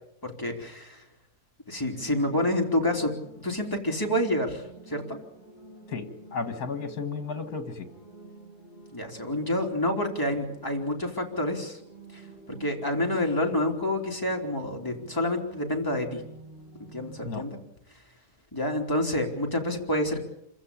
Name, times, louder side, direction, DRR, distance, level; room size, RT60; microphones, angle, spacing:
voice 1, 0.2-1.0 1.7-3.1 3.4-4.6 4.9-5.2 8.9-11.8 12.1-12.2 12.5-16.2 16.9-17.6 18.5-20.2, left 1 dB, 10° left, 0 dB, 3.4 m, -28 dB
sound 1, 1.9-17.2, right 3 dB, 50° right, 4.1 m, -50 dB
voice 2, 5.9-7.9 17.2-17.4, left 4 dB, 65° left, 9 dB, 2.3 m, -33 dB
27.0 x 15.5 x 8.6 m, 0.77 s
omnidirectional pair, 1.7 m